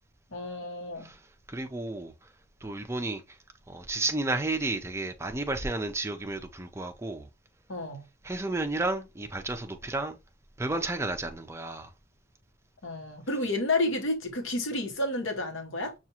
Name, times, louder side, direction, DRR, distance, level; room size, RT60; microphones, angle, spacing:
voice 1, 0.3-1.1 7.7-8.0 12.8-15.9, left 2 dB, 75° left, 1.0 m, -30 dB
voice 2, 1.0-2.3 2.6-3.4 3.7-7.3 8.2-10.2 10.6-11.9, right 2 dB, 15° right, 0.4 m, -32 dB
5.7 x 2.4 x 2.8 m
head